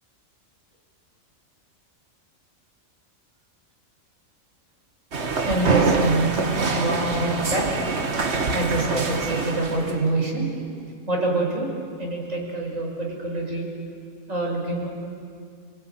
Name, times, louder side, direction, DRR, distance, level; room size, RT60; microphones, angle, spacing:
sound 1, 5.1-10.0, right 3 dB, 60° right, 1.8 m, -25 dB
voice 1, 5.4-7.7 8.5-10.5 11.1-11.7 12.0-13.7 14.3-14.9, right 2 dB, 90° right, -2 dB, 6.2 m, -25 dB
29.5 x 19.0 x 9.2 m, 2.2 s
omnidirectional pair, 1.3 m